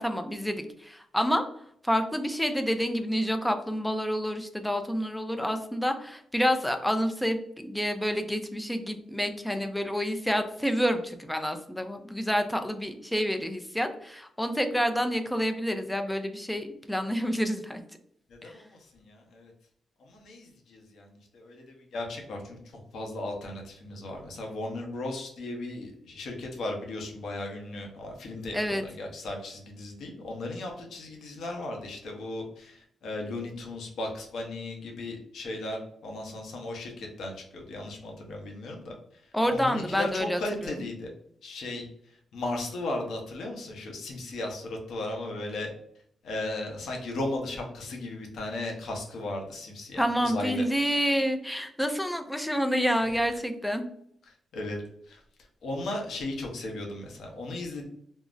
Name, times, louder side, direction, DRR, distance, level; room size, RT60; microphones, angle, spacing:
voice 1, 0.0-1.4 1.8-17.8 18.4-18.5 28.5-28.8 39.3-40.7 50.0-53.9, equal, 5° left, 6 dB, 0.4 m, -28 dB
voice 2, 18.3-19.5 20.0-22.6 22.9-38.9 39.5-41.1 41.4-41.8 42.3-45.7 46.2-50.6 54.5-54.8 55.1-55.2 55.6-57.9, left 2 dB, 80° left, 1 dB, 0.7 m, -36 dB
3.7 x 2.0 x 2.4 m, 0.69 s
cardioid pair, 90°, 0 cm